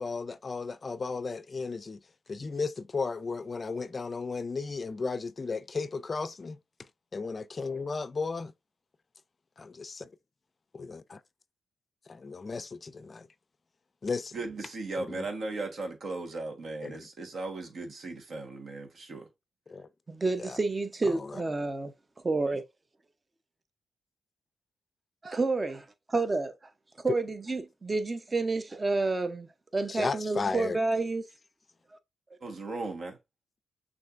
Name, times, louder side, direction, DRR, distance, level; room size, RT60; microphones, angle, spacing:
voice 1, 0.0-2.0 2.3-6.6 7.1-8.5 9.6-10.1 10.7-11.2 12.1-13.3 14.0-14.4 15.0-15.3 16.8-17.0 19.7-19.9 20.4-20.6 21.1-21.4 29.9-30.8, left 4 dB, 40° left, 0.4 m, -35 dB
voice 2, 14.3-19.2 32.4-33.2, right 3 dB, 60° right, 1.3 m, -37 dB
voice 3, 20.1-21.9 22.2-22.6 25.2-26.5 27.0-31.2, right 3 dB, 30° right, 0.8 m, -29 dB
6.3 x 2.6 x 2.5 m
supercardioid pair, 55°, 0 cm